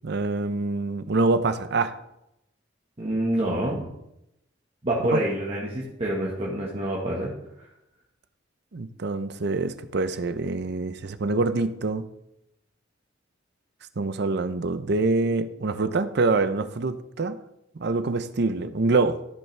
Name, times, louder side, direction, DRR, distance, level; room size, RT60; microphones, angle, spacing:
voice 1, 0.0-1.9 5.1-5.2 8.7-12.0 14.0-17.4 17.8-19.2, right 3 dB, 60° right, 12 dB, 0.6 m, -25 dB
voice 2, 3.0-3.9 4.8-7.3 7.6-7.7, right 1 dB, 30° right, -4 dB, 1.3 m, -27 dB
14.0 x 5.5 x 3.3 m, 0.84 s
head